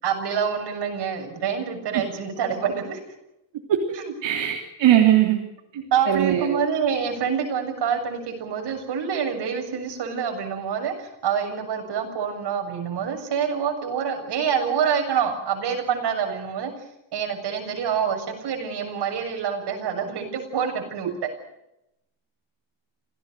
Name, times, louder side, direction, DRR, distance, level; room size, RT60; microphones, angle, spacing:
voice 1, 0.0-3.0 3.9-4.1 5.7-16.7 17.1-21.1, right 7 dB, 65° right, 4 dB, 7.3 m, -26 dB
voice 2, 4.2-5.4 6.1-6.6, right 11 dB, 85° right, 1 dB, 3.3 m, -19 dB
27.5 x 17.5 x 8.0 m, 0.86 s
cardioid pair, 160°, 44 cm